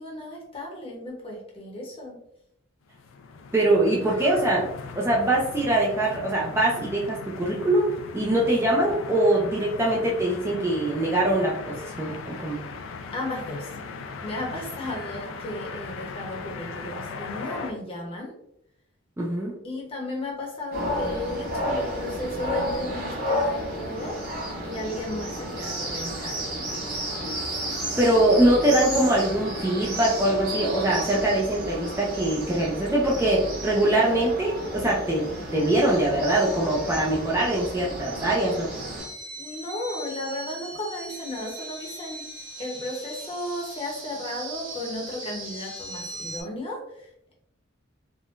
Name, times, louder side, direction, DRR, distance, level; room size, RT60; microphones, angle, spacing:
voice 1, 0.0-2.2 13.1-13.7 14.2-18.3 19.6-26.6 39.4-42.3 42.6-47.3, left 1 dB, 30° left, -2 dB, 0.8 m, -35 dB
sound 1, 2.9-17.7, left 4 dB, 80° left, 0.4 m, -39 dB
voice 2, 3.5-4.7 5.0-12.6 19.2-19.5 28.0-35.3 35.5-38.7, right 1 dB, 15° right, -3 dB, 0.4 m, -23 dB
sound 2, 20.7-39.0, equal, 50° right, 1.0 m, -32 dB
sound 3, 39.0-46.4, right 1 dB, 75° right, 1.2 m, -39 dB
3.6 x 2.1 x 2.4 m, 0.75 s
head